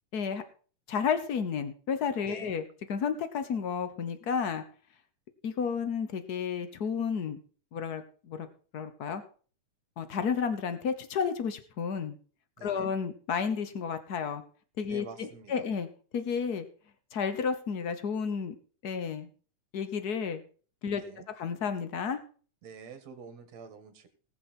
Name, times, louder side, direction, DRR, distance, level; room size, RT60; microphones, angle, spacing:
voice 1, 0.1-0.4 0.9-2.6 2.9-4.6 5.4-7.4 7.7-8.5 8.7-9.2 10.0-12.2 12.6-14.4 14.8-15.9 16.1-16.6 17.1-18.5 18.8-19.3 19.7-20.4 20.8-21.0 21.4-22.2, left 6 dB, 85° left, 10 dB, 0.8 m, -31 dB
voice 2, 12.6-12.9 14.9-15.7 20.9-21.3 22.6-24.1, right 6 dB, 60° right, 9 dB, 2.9 m, -47 dB
19.0 x 7.1 x 4.4 m, 0.39 s
omnidirectional pair, 3.4 m